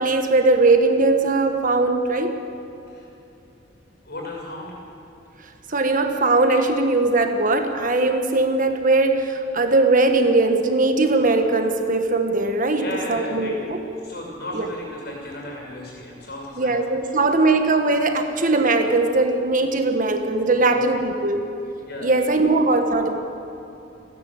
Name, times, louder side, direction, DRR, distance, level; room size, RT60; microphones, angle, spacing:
voice 1, 0.0-2.4 5.7-13.8 14.5-14.7 16.6-21.5 22.0-23.1, right 2 dB, 45° right, 6 dB, 1.5 m, -20 dB
voice 2, 4.0-4.8 12.7-13.6 14.0-16.8 17.0-17.1 20.5-20.8 21.8-22.4, left 1 dB, 60° left, -1 dB, 6.7 m, -35 dB
28.5 x 10.5 x 8.8 m, 2.9 s
head